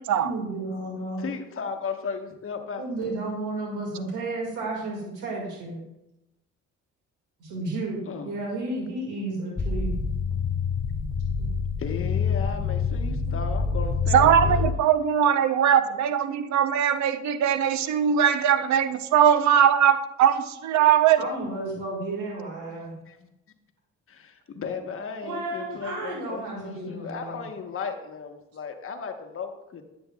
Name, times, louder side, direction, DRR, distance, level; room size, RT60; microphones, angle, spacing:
voice 1, 0.2-1.2 2.8-5.8 7.4-10.0 11.4-11.5 13.3-13.4 21.2-23.0 25.2-27.5, right 2 dB, 85° right, -3 dB, 2.0 m, -32 dB
voice 2, 1.2-3.1 8.1-8.3 11.8-14.7 22.7-23.3 24.1-29.8, left 5 dB, 45° left, 5 dB, 1.0 m, -35 dB
sound 1, 9.6-14.7, left 5 dB, 20° left, 0.3 m, -26 dB
voice 3, 14.1-21.3, right 9 dB, 70° right, 12 dB, 0.6 m, -20 dB
9.9 x 7.9 x 2.3 m, 0.92 s
cardioid pair, 90°, 30 cm